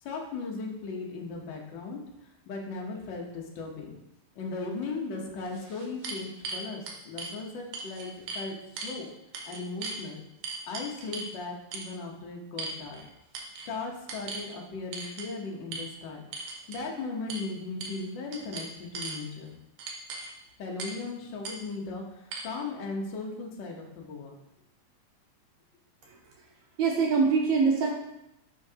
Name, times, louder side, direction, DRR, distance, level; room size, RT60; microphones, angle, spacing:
voice 1, 0.0-2.0 2.5-3.9 4.3-9.1 9.4-10.2 10.6-13.0 13.7-16.2 16.7-19.6 20.6-24.4, left 3 dB, 70° left, 0 dB, 1.0 m, -37 dB
sound 1, 4.8-4.9 5.5-7.3 7.7-8.5 8.8-9.0 9.3-10.0 10.4-11.3 11.7-11.9 12.6-13.1 13.3-13.7 14.1-14.5 14.9-15.3 15.7-15.9 16.3-16.8 17.3-17.5 17.8-18.0 18.3-19.2 19.8-20.3 20.8-21.0 21.4-21.6 22.3-22.4, right 3 dB, 90° right, 2.5 m, -38 dB
voice 2, 26.8-27.9, right 5 dB, 70° right, 0 dB, 1.9 m, -24 dB
10.5 x 4.5 x 2.8 m, 0.87 s
omnidirectional pair, 3.6 m